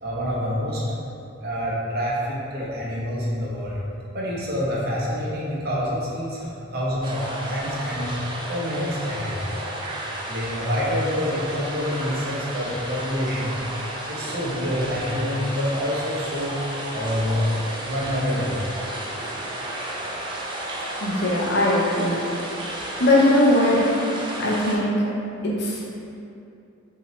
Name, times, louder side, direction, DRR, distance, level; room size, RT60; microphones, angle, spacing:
voice 1, 0.0-0.8 1.4-3.8 4.1-8.1 8.5-9.5 10.3-13.6 14.1-16.6 16.9-17.4 17.8-18.6, equal, 50° right, -6 dB, 0.9 m, -27 dB
sound 1, 7.0-24.8, right 1 dB, 25° right, 0.5 m, -33 dB
voice 2, 21.0-22.2 23.0-23.9 24.4-25.0 25.4-25.8, left 1 dB, 55° left, -4 dB, 0.8 m, -20 dB
5.6 x 2.8 x 3.1 m, 2.6 s
head